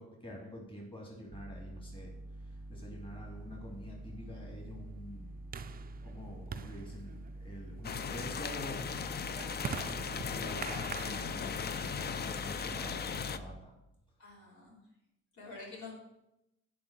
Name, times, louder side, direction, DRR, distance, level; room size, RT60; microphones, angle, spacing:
voice 1, 0.0-2.1 2.4-13.7, equal, 15° left, -2 dB, 2.4 m, -47 dB
sound 1, 1.3-13.6, right 1 dB, 5° right, 1.1 m, -47 dB
sound 2, 2.8-13.2, right 7 dB, 30° right, 0.4 m, -47 dB
sound 3, 7.8-13.4, left 7 dB, 35° left, 0.4 m, -37 dB
voice 2, 14.2-14.8 15.3-15.9, left 3 dB, 70° left, -4 dB, 3.4 m, -48 dB
7.7 x 4.8 x 6.0 m, 0.88 s
cardioid pair, 90°, 30 cm